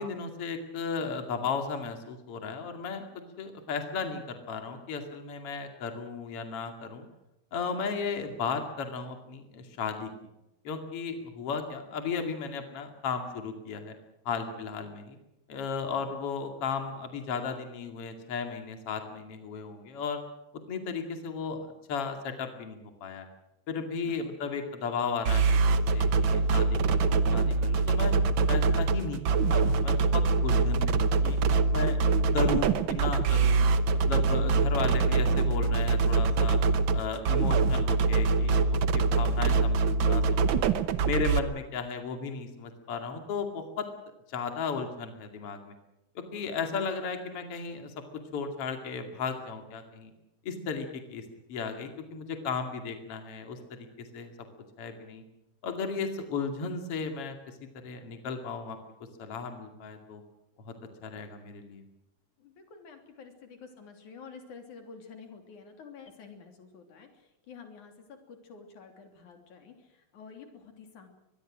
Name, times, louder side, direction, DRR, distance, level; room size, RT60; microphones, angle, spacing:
voice 1, 0.0-3.1 3.4-7.1 7.5-10.1 10.6-13.9 14.2-15.2 15.5-20.2 20.7-23.3 23.7-28.1 28.5-29.2 29.5-31.4 31.7-32.0 32.3-33.6 34.1-36.6 36.9-40.7 41.0-43.9 44.3-45.7 46.1-47.9 48.3-50.1 50.4-51.2 51.5-54.3 54.8-55.2 55.6-57.5 57.8-58.8 59.2-60.2 60.6-60.7 61.0-61.8, left 5 dB, 50° left, 6 dB, 3.3 m, -35 dB
sound 1, 25.2-41.4, right 4 dB, 65° right, 1.2 m, -24 dB
voice 2, 62.4-71.1, left 5 dB, 85° left, 5 dB, 4.6 m, -49 dB
24.0 x 21.5 x 6.3 m, 0.90 s
omnidirectional pair, 3.4 m